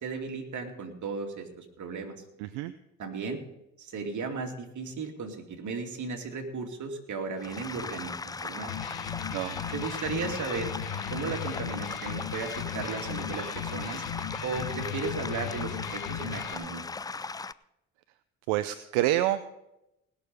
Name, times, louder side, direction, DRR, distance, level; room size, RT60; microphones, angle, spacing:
voice 1, 0.0-2.2 3.0-3.4 3.8-8.7 9.7-10.7 11.1-14.0 14.4-16.8, right 4 dB, 50° right, 2 dB, 2.7 m, -35 dB
voice 2, 2.4-2.7 9.3-9.6 18.5-19.5, right 14 dB, 80° right, 12 dB, 0.6 m, -28 dB
sound 1, 7.4-17.5, left 4 dB, 10° left, 0.3 m, -38 dB
Electric guitar, 8.6-16.6, left 9 dB, 75° left, 1.6 m, -37 dB
19.0 x 6.9 x 5.5 m, 0.87 s
hypercardioid pair, 55°, 37 cm